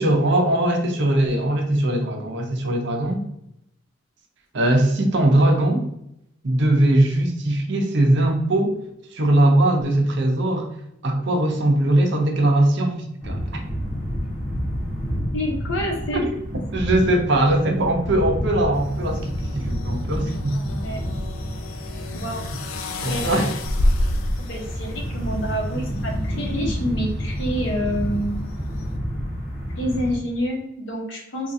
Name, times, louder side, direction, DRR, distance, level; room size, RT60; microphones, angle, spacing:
voice 1, 0.0-3.2 4.5-5.8 6.4-8.8 9.1-10.7 11.0-13.4 16.2-16.3 16.7-19.2 19.5-20.6 22.1-22.2 23.0-23.5, right 1 dB, 60° right, 2 dB, 0.6 m, -20 dB
sound 1, 13.2-30.2, equal, 10° right, 1.0 m, -29 dB
voice 2, 15.3-16.3 20.8-21.1 22.1-22.4 23.1-23.2 24.4-28.4 29.8-31.5, equal, 60° left, -1 dB, 0.9 m, -27 dB
sound 2, 18.7-29.0, left 1 dB, 80° left, 0.4 m, -30 dB
3.6 x 2.4 x 2.6 m, 0.78 s
head